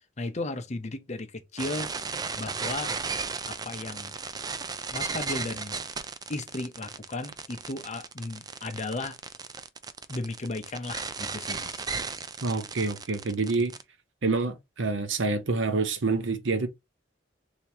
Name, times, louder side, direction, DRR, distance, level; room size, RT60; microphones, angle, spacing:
voice 1, 0.2-1.9 2.3-2.9 3.5-4.2 4.9-5.8 6.3-9.2 10.1-11.9, left 2 dB, 40° left, 0.7 m, -35 dB
sound 1, 1.6-13.8, right 5 dB, 20° right, 0.4 m, -35 dB
voice 2, 12.4-13.7 14.2-16.7, right 3 dB, 85° right, 0.8 m, -27 dB
3.4 x 3.0 x 4.3 m
head